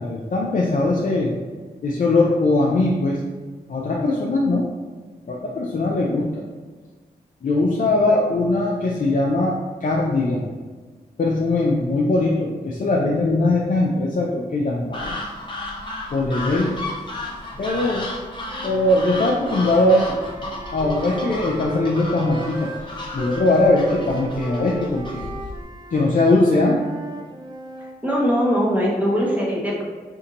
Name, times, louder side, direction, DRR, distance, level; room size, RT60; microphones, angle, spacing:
voice 1, 0.0-1.3 1.8-3.2 3.7-4.7 5.3-6.4 7.4-10.6 11.2-15.1 16.1-16.8 17.6-18.1 18.6-20.2 20.7-25.3 25.9-26.8, left 2 dB, 50° left, -3 dB, 0.5 m, -20 dB
sound 1, 14.9-25.6, left 2 dB, 30° left, 0.9 m, -33 dB
Wind instrument woodwind instrument, 18.4-22.8 23.1-28.0, right 3 dB, 25° right, 0.4 m, -36 dB
voice 2, 28.0-29.8, equal, 10° right, -5 dB, 1.2 m, -21 dB
2.7 x 2.6 x 3.9 m, 1.4 s
cardioid pair, 45°, 17 cm